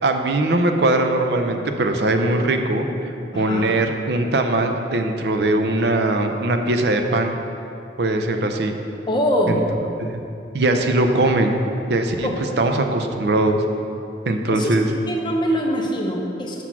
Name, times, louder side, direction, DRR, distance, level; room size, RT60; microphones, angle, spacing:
voice 1, 0.0-2.9 3.3-7.3 8.0-8.8 9.5-9.6 10.0-10.1 10.5-11.6 11.9-12.3 12.6-13.6 14.3-14.9, right 2 dB, 60° right, 5 dB, 0.5 m, -20 dB
voice 2, 3.3-3.6 9.1-9.6 12.2-12.4 14.5-14.8 15.1-16.6, equal, 25° left, 0 dB, 0.8 m, -23 dB
6.1 x 5.9 x 5.8 m, 2.7 s
head